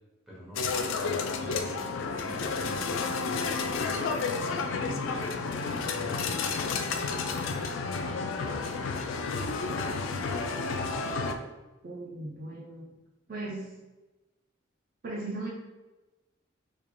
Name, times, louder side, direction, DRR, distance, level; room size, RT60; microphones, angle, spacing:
voice 1, 0.3-0.6 1.4-9.5, equal, ahead, -7 dB, 1.1 m, -46 dB
sound 1, 0.5-11.3, left 4 dB, 75° left, 0.3 m, -31 dB
voice 2, 11.8-12.9 13.3-13.7 15.0-15.5, right 2 dB, 45° right, -4 dB, 0.5 m, -37 dB
3.6 x 3.2 x 2.3 m, 1.1 s
head